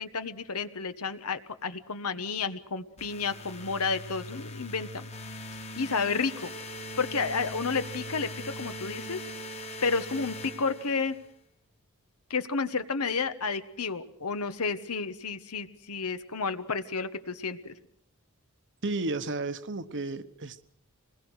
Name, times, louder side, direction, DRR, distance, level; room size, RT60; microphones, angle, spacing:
voice 1, 0.0-5.1 5.8-6.5 7.0-9.3 9.8-11.2 12.3-17.7, left 4 dB, 80° left, 11 dB, 1.3 m, -31 dB
sound 1, 3.0-11.3, left 1 dB, 30° left, 1.7 m, -41 dB
voice 2, 18.8-20.6, right 2 dB, 55° right, 11 dB, 1.1 m, -33 dB
26.0 x 20.5 x 6.4 m, 0.68 s
head